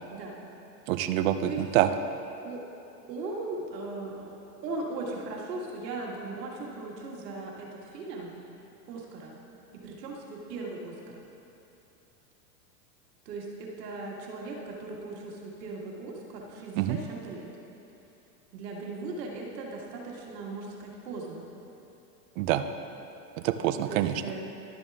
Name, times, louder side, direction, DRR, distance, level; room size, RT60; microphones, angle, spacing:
voice 1, 0.9-1.9 16.8-17.0 22.4-22.7 23.4-24.2, right 13 dB, 55° right, 9 dB, 0.6 m, -26 dB
voice 2, 3.1-8.3 8.9-9.3 9.8-11.1 13.3-17.5 18.5-21.4 23.9-24.5, right 3 dB, 75° right, -1 dB, 1.9 m, -38 dB
12.0 x 7.0 x 3.5 m, 3.0 s
supercardioid pair, 130°, 49 cm